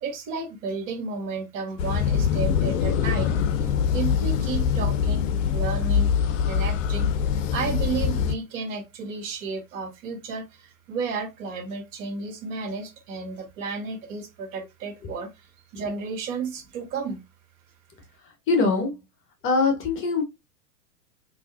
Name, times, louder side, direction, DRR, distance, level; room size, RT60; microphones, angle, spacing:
voice 1, 0.0-6.1 6.4-15.5 15.7-17.2, right 4 dB, 55° right, 1.3 m, -33 dB
sound 1, 1.8-8.3, left 7 dB, 55° left, 0.6 m, -23 dB
voice 2, 18.5-19.0 19.4-20.2, left 4 dB, 25° left, 1.0 m, -22 dB
3.6 x 2.7 x 2.5 m
hypercardioid pair, 105°, 47 cm